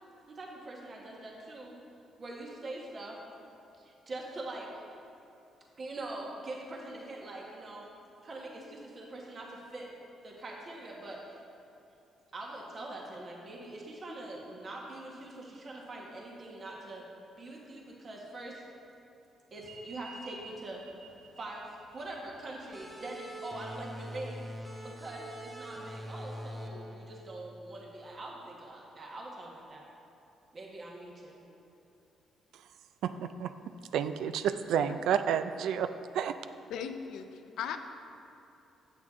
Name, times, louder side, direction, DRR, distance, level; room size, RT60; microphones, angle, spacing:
voice 1, 0.3-1.8 2.2-3.2 3.8-4.7 5.8-7.9 8.2-9.9 10.2-11.4 12.3-17.0 17.4-18.6 19.5-20.8 21.4-24.5 24.8-29.9 30.5-31.4, right 2 dB, 40° right, -2 dB, 1.3 m, -43 dB
sound 1, 19.6-24.6, right 3 dB, 60° right, 1.4 m, -53 dB
sound 2, 22.7-28.0, equal, 10° right, 0.8 m, -44 dB
voice 2, 33.0-33.5 33.9-35.9 36.1-36.4, right 8 dB, 80° right, 10 dB, 0.3 m, -30 dB
voice 3, 36.7-37.8, left 8 dB, 80° left, 7 dB, 0.5 m, -38 dB
8.2 x 7.9 x 3.6 m, 2.8 s
cardioid pair, 90°, 0 cm